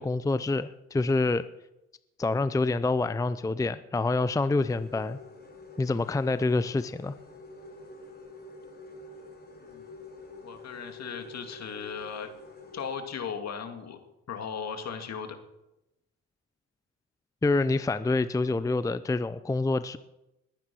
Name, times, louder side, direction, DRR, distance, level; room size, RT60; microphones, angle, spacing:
voice 1, 0.0-1.5 2.2-5.2 5.8-7.1 17.4-20.0, left 3 dB, 10° left, 14 dB, 0.5 m, -27 dB
sound 1, 4.5-13.0, left 2 dB, 35° left, 4.0 m, -47 dB
voice 2, 10.4-12.3 12.7-14.0 14.3-15.4, left 6 dB, 60° left, 6 dB, 2.3 m, -37 dB
20.5 x 9.2 x 6.2 m, 0.93 s
cardioid pair, 90°, 30 cm